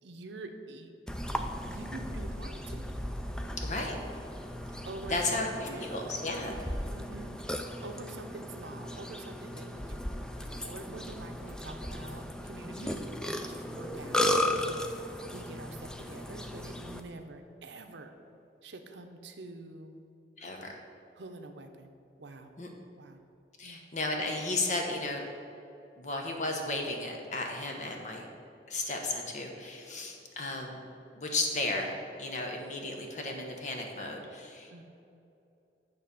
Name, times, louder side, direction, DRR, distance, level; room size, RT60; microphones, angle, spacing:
voice 1, 0.0-0.9 1.6-3.0 4.8-5.2 5.6-6.1 6.5-10.0 10.4-18.1 18.6-19.9 21.2-21.9 22.2-22.5 23.0-23.2 23.6-23.8 34.7-34.8, right 2 dB, 80° right, 6 dB, 0.7 m, -46 dB
Burping eructation, 1.1-17.0, left 1 dB, 5° left, 0.3 m, -36 dB
voice 2, 3.6-3.9 5.1-6.5 12.7-13.0 20.4-20.8 22.6-22.7 23.6-25.3 26.0-28.3 28.7-30.8 31.1-34.8, left 2 dB, 40° left, 1 dB, 0.9 m, -34 dB
8.9 x 3.3 x 6.8 m, 2.7 s
head